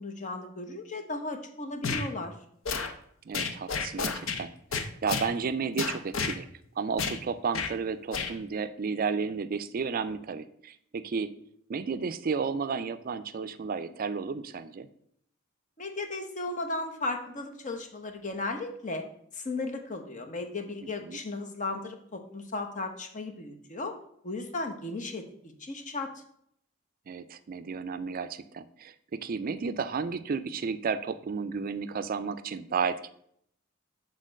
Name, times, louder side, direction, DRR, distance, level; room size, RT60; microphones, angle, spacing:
voice 1, 0.0-2.3 15.8-19.0 19.3-23.9 24.2-26.1, left 2 dB, 40° left, 5 dB, 0.9 m, -35 dB
sound 1, 1.8-2.1 2.6-2.9 3.3-4.4 4.7-5.3 5.8-6.4 7.0-7.2 7.5-7.7 8.1-8.3, left 5 dB, 75° left, 0.7 m, -31 dB
voice 2, 3.3-6.5 6.8-11.3 11.7-14.9 21.0-21.2 27.1-33.1, right 5 dB, 45° right, 12 dB, 0.4 m, -32 dB
6.6 x 3.8 x 6.2 m, 0.68 s
head